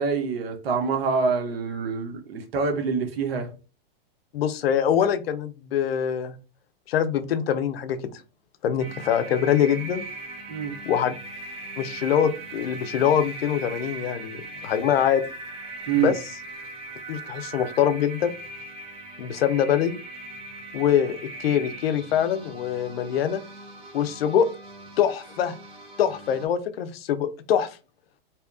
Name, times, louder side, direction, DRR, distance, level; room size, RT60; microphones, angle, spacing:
voice 1, 0.0-3.5 10.5-10.7 15.9-16.1, right 5 dB, 75° right, 0.7 m, -26 dB
voice 2, 4.3-6.3 6.9-8.0 8.6-10.0 10.9-11.1 11.8-15.2 16.0-16.1 17.1-18.3 19.2-20.0 20.7-23.4 23.9-24.5 25.0-25.5 26.0-27.8, left 9 dB, 80° left, 0.5 m, -24 dB
sound 1, 8.8-26.5, right 2 dB, 20° right, 0.5 m, -40 dB
2.8 x 2.2 x 2.3 m
hypercardioid pair, 130°, 30 cm